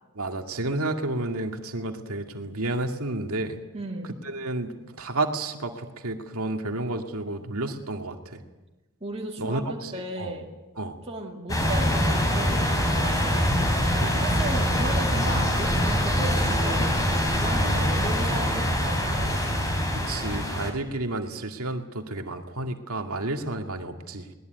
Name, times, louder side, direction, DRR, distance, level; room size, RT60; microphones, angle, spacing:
voice 1, 0.2-3.6 4.2-8.4 9.4-9.9 10.2-10.3 10.8-11.0 14.0-14.2 19.9-24.3, right 2 dB, 80° right, 4 dB, 2.2 m, -31 dB
voice 2, 3.7-4.2 9.0-10.5 11.1-13.5 14.2-19.5, right 2 dB, 25° right, -1 dB, 2.4 m, -35 dB
sound 1, 11.5-20.7, equal, 15° left, 4.3 m, -24 dB
21.5 x 20.0 x 9.2 m, 1.1 s
head